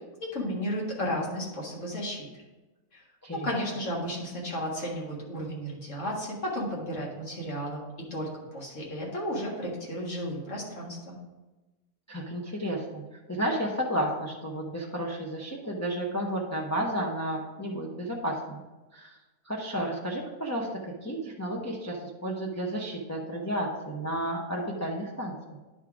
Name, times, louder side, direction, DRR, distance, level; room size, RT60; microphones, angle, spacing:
voice 1, 0.2-2.2 2.9-3.0 3.4-7.8 8.1-11.2, equal, 65° left, -3 dB, 2.1 m, -33 dB
voice 2, 12.1-13.0 13.3-18.6 18.9-19.2 19.4-25.6, right 1 dB, 15° left, -3 dB, 0.7 m, -32 dB
10.0 x 3.7 x 4.9 m, 1.1 s
omnidirectional pair, 1.4 m